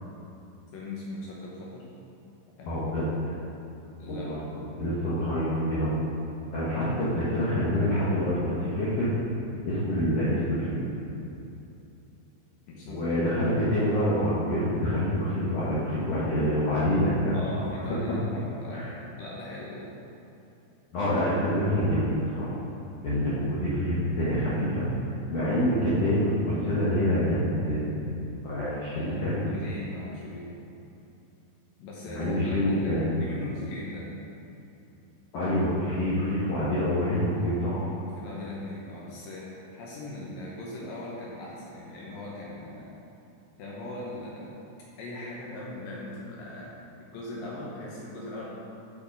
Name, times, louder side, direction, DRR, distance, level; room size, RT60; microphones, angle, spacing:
voice 1, 0.7-1.9 2.6-2.8 4.0-4.9 12.7-13.3 17.3-19.9 25.6-25.7 28.9-29.2 29.5-30.5 31.8-34.1 37.9-43.0 43.6-44.7 45.0-48.5, left 2 dB, 75° left, -4 dB, 2.3 m, -40 dB
voice 2, 2.6-3.1 4.1-4.4 4.8-6.0 6.5-9.1 9.6-10.8 12.8-17.6 18.7-18.9 20.9-22.5 23.0-24.9 25.3-28.1 28.4-29.5 32.1-33.1 35.3-37.9, equal, 90° left, -9 dB, 1.4 m, -26 dB
6.4 x 6.0 x 5.2 m, 2.8 s
omnidirectional pair, 4.7 m